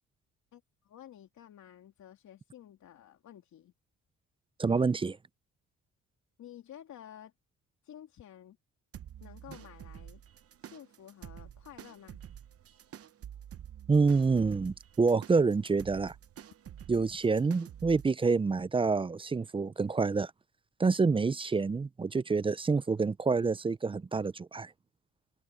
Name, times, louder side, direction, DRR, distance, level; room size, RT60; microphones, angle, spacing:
voice 1, 0.5-3.7 6.4-7.3 7.8-8.6 9.2-10.2 10.6-12.2, left 10 dB, 70° left, 2.9 m, -52 dB
voice 2, 4.6-5.2 13.9-16.1 16.9-20.3 20.8-24.7, right 4 dB, 20° right, 0.4 m, -27 dB
sound 1, 8.9-18.1, right 10 dB, 50° right, 0.9 m, -49 dB
cardioid pair, 90°, 30 cm